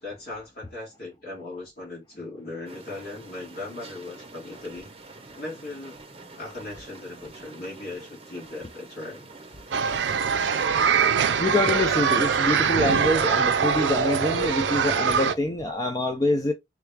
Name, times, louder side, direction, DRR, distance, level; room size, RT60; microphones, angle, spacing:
voice 1, 0.0-4.9 5.3-6.0 6.3-9.3, left 2 dB, 55° left, 1.8 m, -38 dB
sound 1, 2.7-10.7, right 3 dB, 30° right, 0.7 m, -46 dB
sound 2, 9.7-15.3, right 6 dB, 85° right, 0.4 m, -23 dB
voice 2, 11.4-16.5, left 1 dB, 20° left, 0.3 m, -25 dB
3.4 x 2.3 x 3.3 m
head